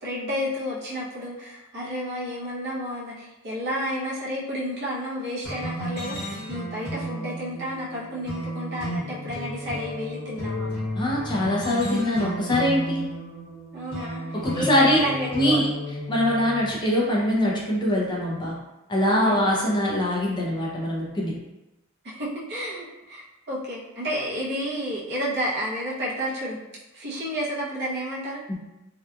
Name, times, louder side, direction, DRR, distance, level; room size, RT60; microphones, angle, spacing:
voice 1, 0.0-10.7 13.7-15.7 19.3-19.4 22.0-26.6 26.9-28.4, equal, 50° right, -6 dB, 0.7 m, -31 dB
sound 1, 5.4-16.7, equal, 50° left, 1.2 m, -33 dB
voice 2, 11.0-13.1 14.3-15.0 15.3-15.7 16.1-18.5 18.9-21.3 28.5-28.6, left 1 dB, 20° left, -4 dB, 0.5 m, -23 dB
2.7 x 2.3 x 2.3 m, 0.99 s
head